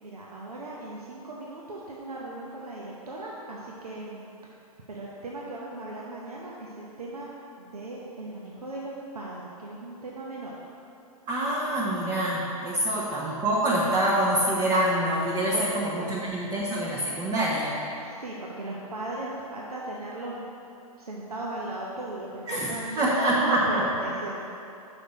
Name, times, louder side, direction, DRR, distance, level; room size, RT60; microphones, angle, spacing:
voice 1, 0.0-4.2 4.9-7.3 7.6-10.6 12.9-13.1 15.5-16.1 18.0-20.4 21.0-23.0 23.3-24.4, right 2 dB, 90° right, -4 dB, 0.8 m, -37 dB
voice 2, 11.3-17.8 22.5-23.9, right 1 dB, 25° right, -5 dB, 0.9 m, -26 dB
6.5 x 5.3 x 4.1 m, 2.7 s
hypercardioid pair, 115°, 19 cm